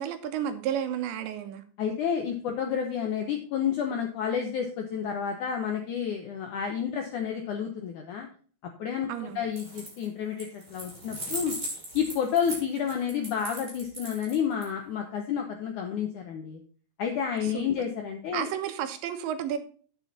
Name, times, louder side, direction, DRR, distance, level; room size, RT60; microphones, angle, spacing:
voice 1, 0.0-1.6 9.1-9.5 17.5-17.7 18.3-19.6, right 9 dB, 90° right, 8 dB, 3.3 m, -32 dB
voice 2, 1.8-8.3 8.8-11.5 11.9-16.6 17.0-18.5, left 8 dB, 80° left, 3 dB, 1.8 m, -30 dB
sound 1, 9.5-10.1 10.4-14.6, right 1 dB, 20° right, 4.8 m, -38 dB
9.3 x 7.6 x 4.1 m, 0.42 s
omnidirectional pair, 5.0 m